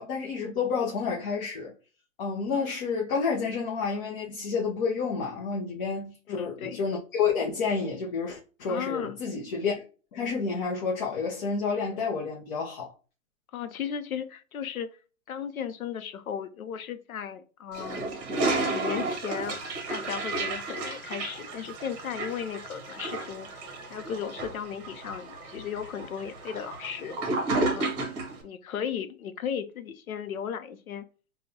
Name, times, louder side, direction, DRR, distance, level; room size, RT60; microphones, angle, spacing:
voice 1, 0.0-1.7 2.2-9.7 10.1-12.9, left 5 dB, 35° left, 0.6 m, -29 dB
voice 2, 6.3-6.8 8.7-9.2 13.5-14.9 15.3-18.1 18.7-19.6 19.9-27.2 27.6-27.9 28.4-31.0, left 8 dB, 80° left, 0.7 m, -35 dB
Toilet flush, 17.7-28.4, right 2 dB, 30° right, 1.0 m, -32 dB
5.2 x 2.3 x 2.7 m
hypercardioid pair, 140°, 42 cm